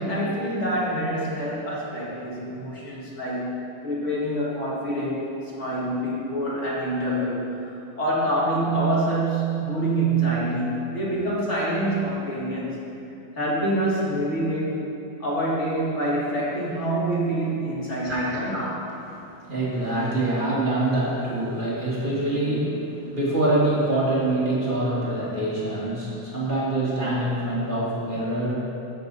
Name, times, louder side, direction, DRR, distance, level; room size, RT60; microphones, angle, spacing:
voice 1, 0.0-7.7 8.0-12.9 13.4-14.8 15.2-18.6, right 1 dB, 25° left, -6 dB, 1.8 m, -26 dB
voice 2, 18.0-28.6, right 1 dB, 25° right, -6 dB, 1.3 m, -25 dB
15.5 x 6.5 x 4.0 m, 2.9 s
omnidirectional pair, 3.5 m